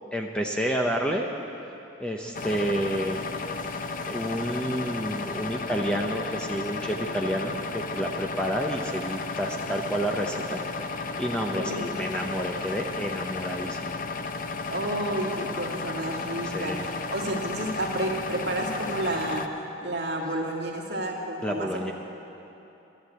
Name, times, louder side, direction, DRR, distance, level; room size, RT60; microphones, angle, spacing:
voice 1, 0.1-1.3 2.0-3.2 4.1-10.9 11.2-14.0 16.4-16.9 21.4-21.9, equal, 5° left, 1 dB, 0.7 m, -29 dB
sound 1, 2.3-19.5, left 4 dB, 45° left, 0.6 m, -34 dB
voice 2, 11.6-11.9 14.7-16.8 17.1-19.5 19.8-21.9, right 1 dB, 55° right, -1 dB, 2.0 m, -30 dB
13.0 x 12.0 x 8.1 m, 2.9 s
head